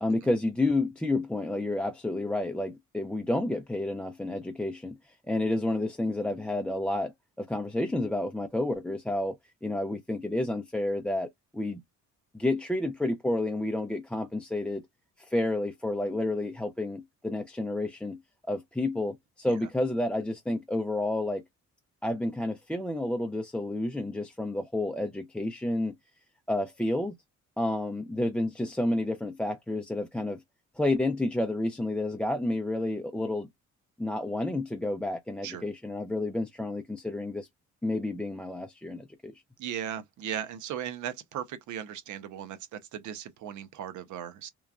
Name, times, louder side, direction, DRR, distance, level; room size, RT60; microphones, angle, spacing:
voice 1, 0.0-7.1 7.4-9.4 9.6-11.8 12.3-14.8 15.2-18.2 18.5-21.4 22.0-25.9 26.5-27.2 27.6-30.4 30.8-33.5 34.0-37.5 37.8-39.3, left 1 dB, 5° left, 0.4 m, -30 dB
voice 2, 39.6-44.5, right 9 dB, 75° right, 0.7 m, -37 dB
3.1 x 2.3 x 2.2 m
cardioid pair, 90°, 30 cm